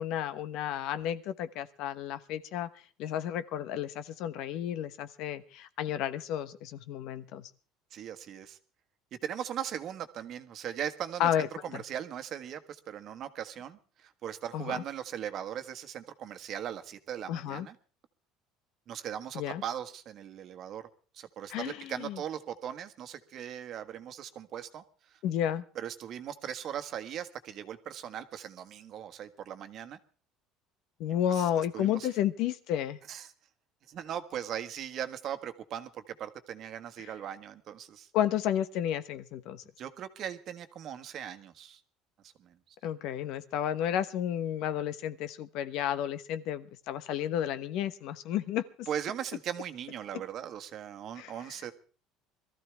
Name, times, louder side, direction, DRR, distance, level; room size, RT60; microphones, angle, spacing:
voice 1, 0.0-2.7 3.0-7.5 11.2-11.5 11.7-11.8 14.5-14.8 17.3-17.7 19.3-19.6 21.5-22.2 25.2-25.6 31.0-33.0 37.0-37.1 38.1-39.6 42.8-48.9 51.2-51.3, left 10 dB, 65° left, 13 dB, 1.1 m, -32 dB
voice 2, 7.9-8.6 9.1-17.7 18.9-20.9 21.1-25.2 25.7-30.0 31.3-32.1 33.1-33.3 33.9-38.1 39.8-41.8 42.2-42.7 48.9-51.7, right 9 dB, 50° right, 9 dB, 1.4 m, -39 dB
22.5 x 14.0 x 3.4 m, 0.38 s
cardioid pair, 130°, 0 cm